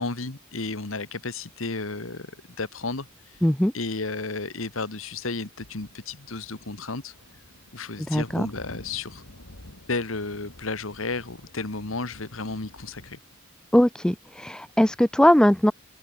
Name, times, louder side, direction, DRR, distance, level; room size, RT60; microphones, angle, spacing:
voice 1, 0.0-2.3 2.6-3.1 3.7-7.1 7.7-9.2 9.9-13.2, left 3 dB, 75° left, 1.8 m, -32 dB
sound 1, 2.8-3.6 4.2-5.3 5.6-13.2, left 1 dB, 90° left, 3.2 m, -50 dB
voice 2, 3.4-3.7 8.1-8.5 13.7-15.7, equal, 5° left, 0.4 m, -20 dB
open air
head